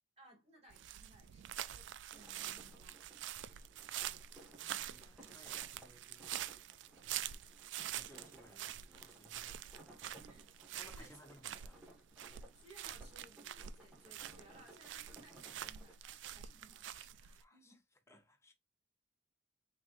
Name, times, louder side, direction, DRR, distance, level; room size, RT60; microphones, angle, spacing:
voice 1, 0.2-3.0 10.2-10.5 10.9-11.2 12.5-17.8, right 1 dB, 35° right, 2.4 m, -62 dB
sound 1, 0.7-17.4, right 11 dB, 70° right, 0.3 m, -46 dB
sound 2, 2.1-15.9, right 1 dB, 5° right, 1.5 m, -61 dB
voice 2, 3.5-4.2 4.8-6.6 7.0-7.5 7.9-10.0 10.8-11.9 17.3-17.8 18.1-18.5, left 1 dB, 15° left, 0.8 m, -63 dB
5.9 x 3.1 x 2.5 m
head